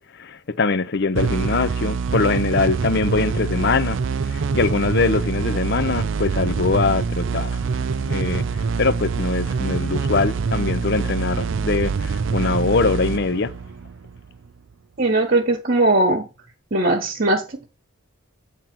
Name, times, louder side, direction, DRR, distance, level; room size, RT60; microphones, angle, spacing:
voice 1, 0.0-4.0 4.2-7.6 8.0-13.5, left 4 dB, 50° left, 0.6 m, -22 dB
sound 1, 1.1-14.5, right 5 dB, 65° right, 0.5 m, -25 dB
voice 2, 15.0-16.3 16.7-17.7, right 2 dB, 45° right, 1.1 m, -19 dB
8.9 x 3.7 x 6.0 m
head